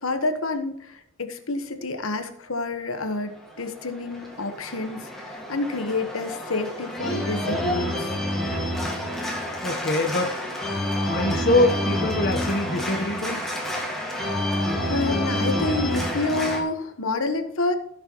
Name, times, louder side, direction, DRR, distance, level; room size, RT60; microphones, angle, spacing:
voice 1, 0.0-8.1 13.9-14.3 14.9-17.8, left 3 dB, 80° left, 7 dB, 1.2 m, -28 dB
Organ, 3.4-16.6, left 1 dB, ahead, 1.7 m, -28 dB
voice 2, 9.6-10.4 11.1-13.4, left 2 dB, 45° left, 3 dB, 1.0 m, -23 dB
16.0 x 6.7 x 3.0 m, 0.76 s
head